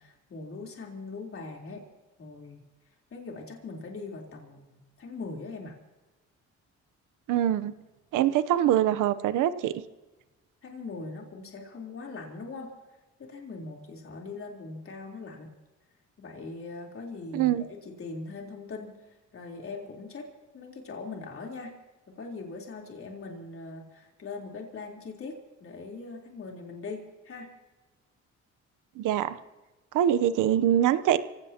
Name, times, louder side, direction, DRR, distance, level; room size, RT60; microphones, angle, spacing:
voice 1, 0.0-1.9 2.2-2.6 3.1-5.8 10.6-12.7 13.2-15.5 16.2-20.3 20.5-21.8 22.1-27.5, left 3 dB, 45° left, 0 dB, 3.8 m, -41 dB
voice 2, 7.3-7.7 8.1-9.7 17.3-17.6 29.0-29.4 29.9-31.2, right 11 dB, 90° right, 14 dB, 0.9 m, -24 dB
26.5 x 17.0 x 2.9 m, 1.2 s
cardioid pair, 90°, 30 cm